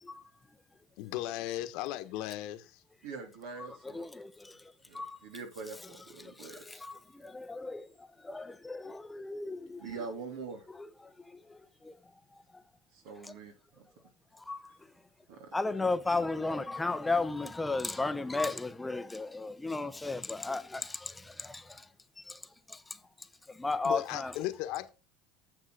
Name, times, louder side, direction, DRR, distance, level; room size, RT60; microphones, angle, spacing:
voice 1, 1.0-2.8 23.8-24.9, left 14 dB, 70° left, 1.3 m, -36 dB
voice 2, 3.0-4.1 4.9-6.8 9.8-10.7 12.9-13.9 15.3-15.5, right 4 dB, 80° right, 3.4 m, -44 dB
voice 3, 3.9-4.6 4.9-5.2 6.4-7.9 8.2-9.8 11.8-11.9 14.5-14.6 15.5-21.8 22.3-22.4 22.7-22.8 23.6-24.3, left 3 dB, 10° left, 0.7 m, -34 dB
9.3 x 7.3 x 5.0 m
supercardioid pair, 115°, 0 cm